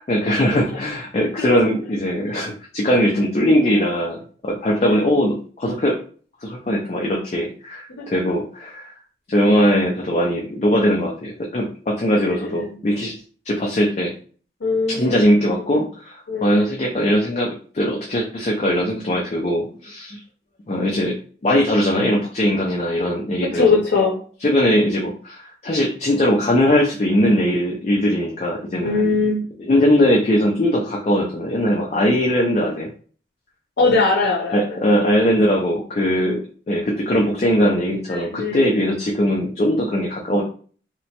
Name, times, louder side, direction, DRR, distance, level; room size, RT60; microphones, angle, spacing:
voice 1, 0.1-6.0 6.4-8.9 9.3-13.1 13.4-14.1 14.9-20.2 20.7-21.2 21.4-23.8 24.4-29.0 29.6-32.9 34.5-36.4 36.7-40.4, equal, 35° left, -1 dB, 0.4 m, -20 dB
voice 2, 3.5-3.8 4.8-5.0 7.9-8.0 12.2-12.8 14.6-15.2 16.3-16.7 18.9-19.0 23.5-24.2 28.8-29.5 33.8-34.8 38.1-38.7, left 3 dB, 85° left, -1 dB, 0.6 m, -21 dB
2.9 x 2.1 x 2.8 m, 0.43 s
head